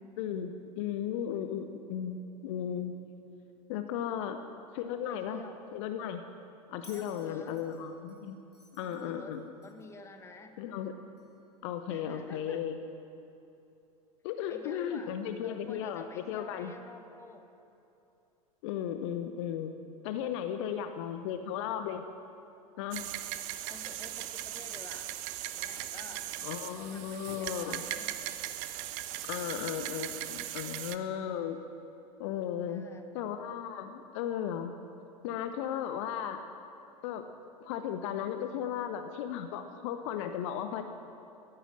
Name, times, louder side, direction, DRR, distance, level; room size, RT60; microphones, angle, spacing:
voice 1, 0.2-2.9 3.7-4.4 4.7-5.4 5.7-6.2 6.7-8.4 8.7-9.4 10.6-11.0 11.6-12.8 14.2-16.7 18.6-19.7 20.0-22.0 22.8-23.0 26.4-27.9 29.2-31.6 32.2-32.8 33.1-34.7 35.2-36.4 37.0-37.3 37.6-40.8, left 9 dB, 50° left, 8 dB, 0.8 m, -35 dB
voice 2, 4.9-5.6 6.9-7.6 8.8-10.6 11.9-12.6 14.5-15.1 15.4-17.5 23.7-25.1 25.5-26.2 26.7-28.2 32.7-33.1, left 3 dB, 15° left, 7 dB, 1.1 m, -50 dB
Bell, 6.8-10.0 11.2-11.3, left 1 dB, 90° left, 2.5 m, -58 dB
sound 1, 22.9-31.0, right 14 dB, 40° right, 0.7 m, -39 dB
14.5 x 11.0 x 7.5 m, 2.8 s
figure-of-eight pair, 85°, 20 cm